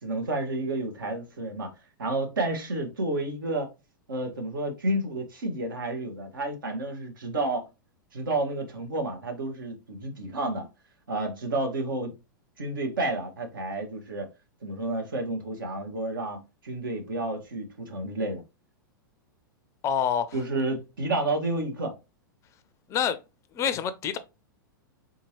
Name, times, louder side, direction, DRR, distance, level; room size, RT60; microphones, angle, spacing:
voice 1, 0.0-1.7 2.0-3.7 4.1-7.7 8.1-10.7 11.1-12.2 12.6-14.3 14.6-18.4 20.3-22.0, right 2 dB, 70° right, 1.0 m, -30 dB
voice 2, 19.8-20.3 22.9-23.2 23.5-24.2, left 8 dB, 25° left, 0.4 m, -26 dB
3.8 x 2.9 x 2.8 m
figure-of-eight pair, 100°, 11 cm